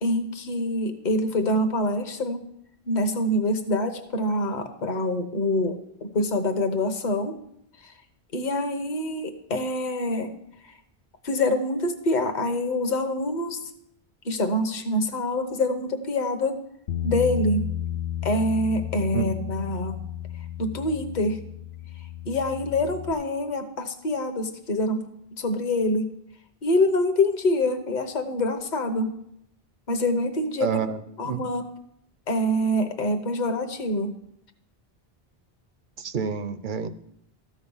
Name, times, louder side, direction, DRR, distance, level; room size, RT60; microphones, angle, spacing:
voice 1, 0.0-2.4 2.9-7.4 7.8-7.9 8.3-10.3 10.6-10.7 11.2-13.7 14.2-16.6 17.0-17.7 18.2-20.0 20.6-21.4 22.2-25.0 25.4-26.1 26.6-29.1 29.9-30.7 31.2-31.6 32.3-34.1, left 1 dB, 50° left, 7 dB, 1.1 m, -25 dB
Bass guitar, 16.9-23.1, left 11 dB, 80° left, 0.9 m, -33 dB
voice 2, 19.1-19.5 30.6-31.4 36.0-36.9, right 6 dB, 55° right, 12 dB, 0.8 m, -29 dB
13.5 x 7.3 x 5.5 m, 0.75 s
omnidirectional pair, 1.0 m